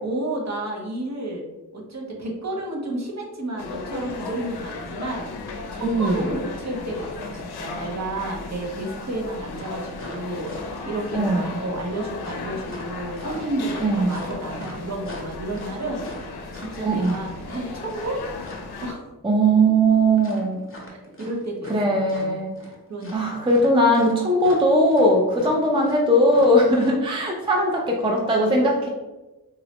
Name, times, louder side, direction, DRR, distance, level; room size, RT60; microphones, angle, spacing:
voice 1, 0.0-1.5 1.7-5.3 5.7-16.0 16.5-18.2 18.8-19.1 20.9-22.5 22.9-23.6, right 1 dB, 45° right, -1 dB, 0.7 m, -31 dB
sound 1, 3.6-18.9, left 3 dB, 85° left, 0.5 m, -35 dB
voice 2, 5.8-6.3 11.1-11.6 13.8-14.2 16.9-17.2 19.2-20.6 21.7-22.5 23.1-28.9, right 1 dB, 15° right, 0 dB, 0.4 m, -19 dB
sound 2, 9.5-10.9 12.2-18.7 20.2-21.8 22.0-22.8 23.0-26.9, left 1 dB, 35° left, 0.8 m, -42 dB
3.8 x 2.1 x 2.8 m, 1.1 s
wide cardioid pair, 105°, 38 cm